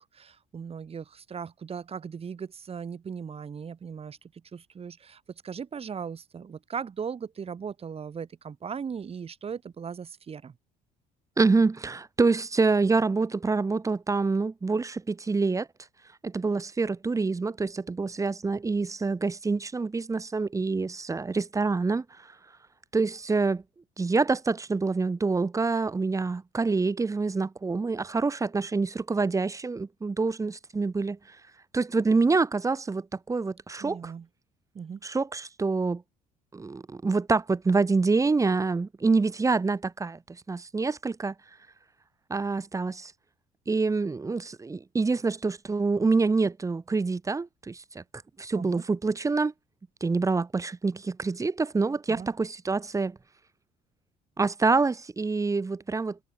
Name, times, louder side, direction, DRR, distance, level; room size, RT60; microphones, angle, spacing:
voice 1, 0.0-4.2 4.5-10.5 33.8-34.3 34.7-35.0 48.5-48.8 52.1-52.3, right 6 dB, 35° right, 3.1 m, -38 dB
voice 2, 11.4-15.7 16.2-22.0 22.9-23.6 24.0-31.2 31.7-34.1 35.0-36.0 36.5-40.2 40.5-41.3 42.3-43.1 43.7-48.0 48.4-49.5 50.0-53.2 54.4-56.2, right 4 dB, 20° right, 1.1 m, -26 dB
cardioid pair, 110°, 17 cm